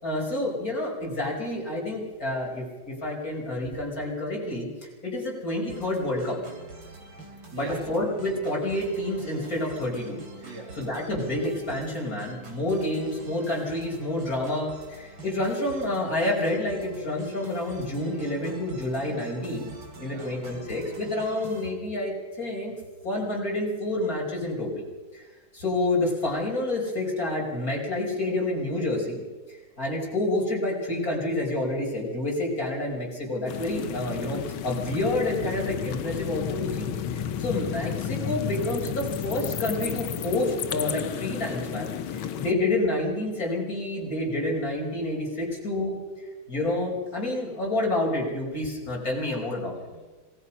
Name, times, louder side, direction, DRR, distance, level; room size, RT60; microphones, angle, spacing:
voice 1, 0.0-4.7 5.0-6.4 7.5-19.7 20.0-22.7 23.0-24.8 25.1-25.2 25.5-29.2 29.5-46.0 46.5-49.8, left 1 dB, 45° left, -2 dB, 5.8 m, -29 dB
sound 1, 5.7-21.7, right 2 dB, 75° right, 4.2 m, -45 dB
voice 2, 6.8-7.8 10.4-10.7 20.0-20.3 37.3-37.5 49.9-50.0, right 4 dB, 60° right, -1 dB, 3.7 m, -44 dB
sound 2, 33.5-42.5, left 8 dB, 80° left, 1.9 m, -32 dB
27.5 x 19.0 x 5.7 m, 1.3 s
omnidirectional pair, 2.2 m